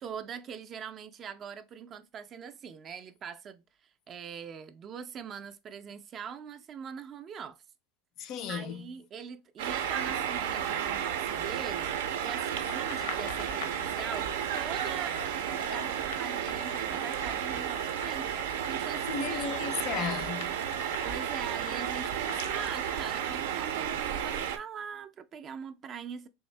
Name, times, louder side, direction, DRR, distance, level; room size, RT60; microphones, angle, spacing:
voice 1, 0.0-7.6 8.2-11.9 12.2-18.3 18.7-19.4 21.0-26.3, right 7 dB, 30° right, 0.3 m, -42 dB
voice 2, 8.2-8.9 19.1-20.6, left 7 dB, 45° left, 0.4 m, -35 dB
sound 1, 9.6-24.6, right 9 dB, 85° right, 0.5 m, -32 dB
sound 2, 12.7-23.0, left 7 dB, 85° left, 0.7 m, -47 dB
3.5 x 2.6 x 3.2 m
supercardioid pair, 140°, 0 cm